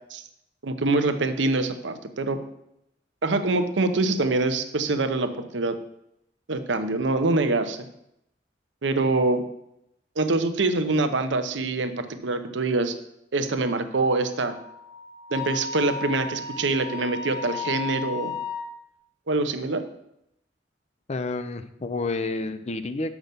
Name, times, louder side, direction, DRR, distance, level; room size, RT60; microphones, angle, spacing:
voice 1, 0.6-2.4 3.2-5.8 6.5-7.9 8.8-9.4 10.2-12.9 13.3-14.5 15.3-18.3 19.3-19.8, right 3 dB, 85° right, 9 dB, 0.8 m, -25 dB
Wind instrument woodwind instrument, 14.3-18.7, left 4 dB, 90° left, 2.0 m, -34 dB
voice 2, 21.1-23.2, left 3 dB, 35° left, 10 dB, 0.6 m, -30 dB
6.6 x 5.9 x 6.8 m, 0.80 s
head